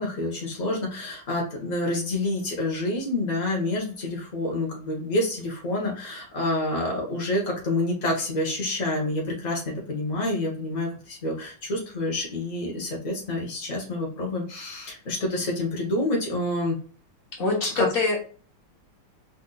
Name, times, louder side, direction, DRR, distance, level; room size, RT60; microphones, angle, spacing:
voice 1, 0.0-16.8 17.8-17.9, left 1 dB, 65° left, -2 dB, 0.4 m, -28 dB
voice 2, 17.4-18.2, left 3 dB, 40° left, -2 dB, 0.9 m, -24 dB
5.2 x 2.6 x 2.3 m, 0.42 s
omnidirectional pair, 2.4 m